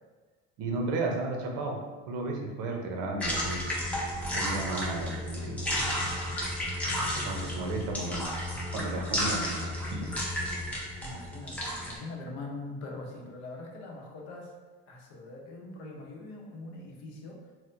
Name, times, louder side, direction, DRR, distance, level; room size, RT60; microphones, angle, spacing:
voice 1, 0.6-3.6 4.3-5.9 7.3-8.3 8.7-10.1, right 2 dB, 60° right, 1 dB, 0.7 m, -34 dB
sound 1, 3.2-12.0, left 1 dB, 5° left, 0.5 m, -32 dB
voice 2, 11.0-14.5 14.9-17.5, left 2 dB, 70° left, 0 dB, 0.8 m, -42 dB
4.2 x 2.1 x 2.5 m, 1.3 s
cardioid pair, 150°, 29 cm